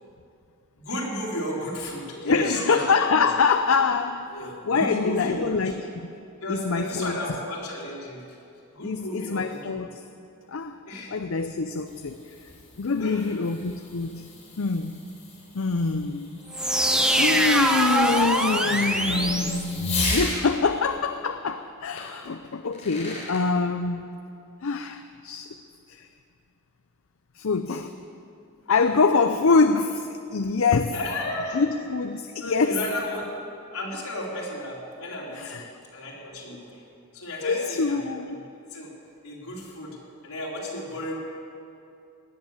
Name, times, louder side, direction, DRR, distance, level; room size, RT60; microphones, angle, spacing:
voice 1, 0.7-3.3 4.3-5.8 6.4-8.2 8.7-9.7 10.9-11.2 13.0-13.4 17.7-17.8 18.9-19.3 30.9-31.6 32.4-33.3 33.7-35.7 35.9-36.8 37.1-38.0 38.7-38.9 39.2-40.0 40.2-41.2, left 1 dB, 80° left, -4 dB, 3.9 m, -33 dB
voice 2, 2.1-4.3 4.7-6.1 6.5-7.2 8.8-10.0 10.5-10.8 11.1-12.2 12.8-14.3 14.6-15.0 15.5-16.3 17.1-24.1 24.6-25.5 25.9-26.1 27.4-27.9 28.7-31.0 31.5-32.8 35.3-35.6 37.4-38.4, left 4 dB, 65° left, 8 dB, 0.5 m, -25 dB
Fireworks, 11.6-20.4 22.0-22.1 22.6-23.4, left 3 dB, 30° left, 3.7 m, -37 dB
sound 1, 16.5-20.3, right 1 dB, 5° right, 0.7 m, -23 dB
17.5 x 10.5 x 7.2 m, 2.6 s
head